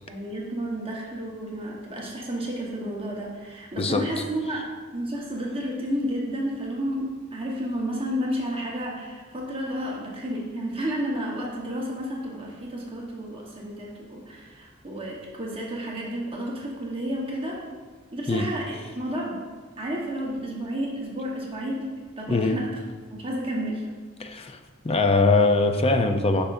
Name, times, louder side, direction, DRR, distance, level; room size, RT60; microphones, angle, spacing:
voice 1, 0.0-17.7 18.1-19.4 19.8-21.9 22.2-22.8 23.1-23.8, equal, 25° right, -3 dB, 1.2 m, -31 dB
voice 2, 22.3-22.6 24.2-24.6 24.8-26.4, left 3 dB, 30° left, 7 dB, 0.5 m, -21 dB
10.0 x 5.8 x 2.6 m, 1.4 s
head